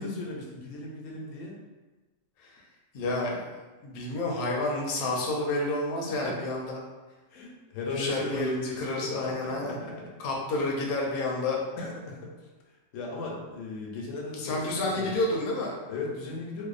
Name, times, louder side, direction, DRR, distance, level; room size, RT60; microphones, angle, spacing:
voice 1, 0.0-1.6 6.1-6.4 7.3-10.1 11.8-12.3 12.9-15.2 15.9-16.7, left 3 dB, 85° left, -1 dB, 0.9 m, -37 dB
voice 2, 2.9-3.5 3.8-6.8 7.9-9.8 10.2-11.6 14.4-15.8, left 2 dB, 60° left, -2 dB, 0.6 m, -30 dB
2.6 x 2.1 x 2.4 m, 1.2 s
omnidirectional pair, 1.3 m